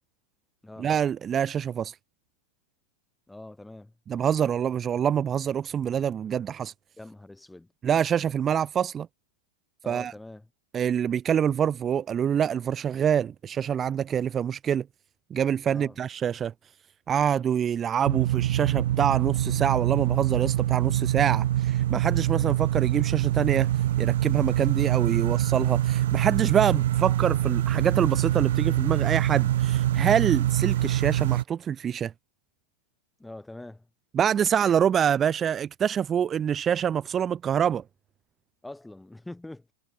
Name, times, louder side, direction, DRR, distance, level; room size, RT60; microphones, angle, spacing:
voice 1, 0.8-2.0 4.1-6.7 7.8-9.1 9.9-10.1 10.7-14.9 15.3-16.5 17.1-32.1 34.1-37.8, right 8 dB, 30° right, 0.5 m, -26 dB
voice 2, 3.3-3.9 7.0-7.7 9.8-10.5 15.7-16.0 33.2-33.9 38.6-39.7, left 2 dB, 5° left, 1.2 m, -43 dB
sound 1, 18.0-31.4, right 13 dB, 70° right, 0.6 m, -25 dB
hypercardioid pair, 105°, 0 cm